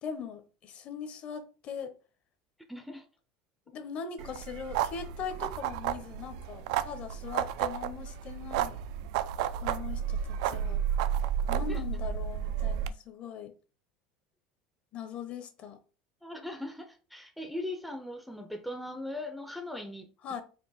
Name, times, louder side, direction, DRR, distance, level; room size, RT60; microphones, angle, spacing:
voice 1, 0.0-1.9 3.7-8.8 9.6-10.8 11.5-13.5 14.9-15.8 20.2-20.4, left 7 dB, 40° left, 0.7 m, -40 dB
voice 2, 2.7-3.0 11.5-11.8 16.2-20.1, left 1 dB, ahead, 0.5 m, -39 dB
sound 1, 4.2-12.9, right 9 dB, 80° right, 0.3 m, -32 dB
4.5 x 2.5 x 3.9 m
cardioid pair, 140°, 3 cm